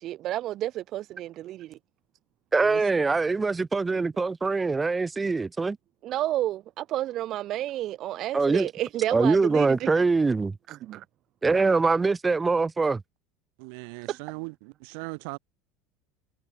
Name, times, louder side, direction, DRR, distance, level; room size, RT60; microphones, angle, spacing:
voice 1, 0.0-1.8 6.0-9.9 10.7-11.0 14.1-14.2, right 14 dB, 50° right, 0.8 m, -31 dB
voice 2, 2.5-5.8 8.3-8.7 9.1-10.5 11.4-13.0, right 4 dB, 15° right, 0.7 m, -23 dB
voice 3, 13.6-15.4, right 36 dB, 75° right, 7.0 m, -39 dB
supercardioid pair, 125°, 0 cm